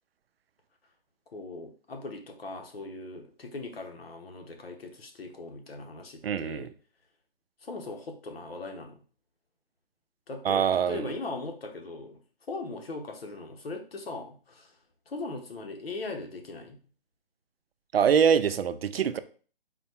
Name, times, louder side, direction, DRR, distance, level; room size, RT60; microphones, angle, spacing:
voice 1, 1.3-6.7 7.6-9.0 10.3-12.2 12.5-14.8 15.1-16.8, left 3 dB, 85° left, 1.1 m, -39 dB
voice 2, 6.2-6.7 10.4-11.1 17.9-19.2, right 7 dB, 85° right, 0.5 m, -24 dB
4.1 x 2.3 x 4.3 m
hypercardioid pair, 175°, 29 cm